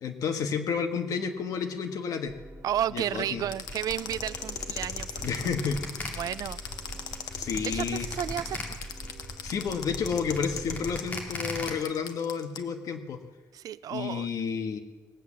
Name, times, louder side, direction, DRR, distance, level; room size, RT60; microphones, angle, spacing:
voice 1, 0.0-2.3 2.9-3.4 5.2-5.8 7.3-8.1 9.4-13.2 13.9-14.8, left 6 dB, 70° left, 5 dB, 1.5 m, -31 dB
sound 1, 2.3-10.9, right 1 dB, 35° right, 2.6 m, -45 dB
voice 2, 2.6-5.6 6.2-6.6 7.6-8.6 13.5-14.3, right 11 dB, 70° right, 17 dB, 0.5 m, -32 dB
sound 2, 3.5-12.6, left 8 dB, 90° left, 1.2 m, -37 dB
sound 3, 3.7-11.7, left 2 dB, 25° left, 2.5 m, -39 dB
20.0 x 8.4 x 7.4 m, 1.3 s
wide cardioid pair, 165°, 6 cm